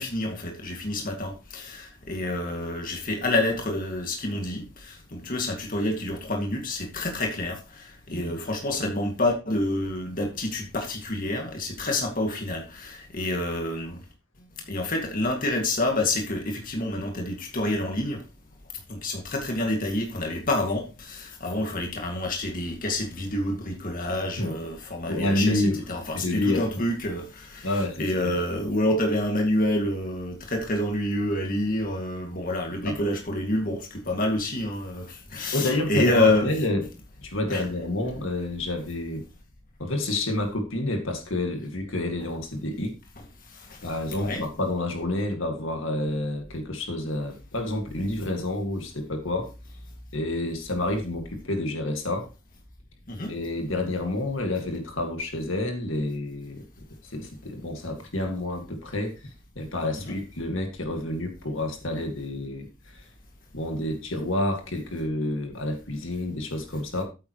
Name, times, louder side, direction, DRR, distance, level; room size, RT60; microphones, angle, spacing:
voice 1, 0.0-14.0 14.7-18.2 18.9-36.5 37.5-37.6 43.5-43.9 44.2-44.4 53.1-53.3 60.0-60.2, left 1 dB, 40° left, 2.2 m, -28 dB
voice 2, 25.1-25.8 26.1-26.8 27.6-28.3 32.8-33.0 35.5-36.9 37.2-39.2 39.8-42.9 43.8-49.5 50.1-52.3 53.3-56.6 57.0-59.3 59.6-63.1 63.5-67.0, left 1 dB, 60° left, 2.2 m, -29 dB
13.5 x 8.8 x 3.1 m
head